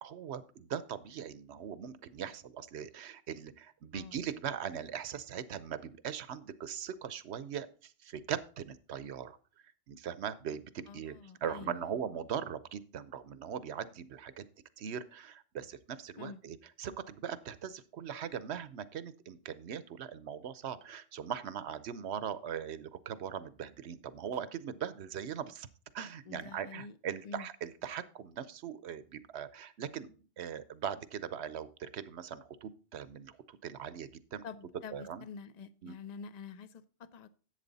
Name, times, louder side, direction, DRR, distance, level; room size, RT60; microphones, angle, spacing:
voice 1, 0.0-9.4 9.9-11.1 11.4-14.4 14.8-25.7 25.9-34.4 34.9-35.2 35.8-36.0, right 8 dB, 65° right, 15 dB, 0.9 m, -40 dB
voice 2, 10.9-11.8 16.2-16.4 26.3-27.0 27.2-27.5 34.4-37.3, left 5 dB, 45° left, 14 dB, 0.6 m, -47 dB
11.0 x 8.0 x 4.0 m, 0.37 s
omnidirectional pair, 1.3 m